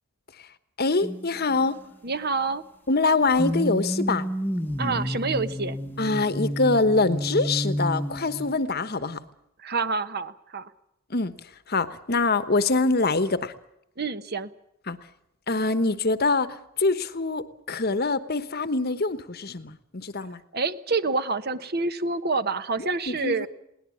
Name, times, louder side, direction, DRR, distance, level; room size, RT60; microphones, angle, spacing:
voice 1, 0.8-1.8 2.9-4.3 6.0-9.2 11.1-11.3 11.7-13.5 14.9-15.0 15.5-20.4 22.8-23.5, left 3 dB, 45° left, 13 dB, 1.1 m, -24 dB
sound 1, 1.0-1.8 3.4-8.5, equal, 10° left, 1.1 m, -30 dB
voice 2, 2.0-2.6 4.8-5.8 9.6-10.7 14.0-14.5 20.5-23.5, right 4 dB, 45° right, 12 dB, 1.1 m, -27 dB
21.5 x 18.5 x 8.5 m, 0.78 s
head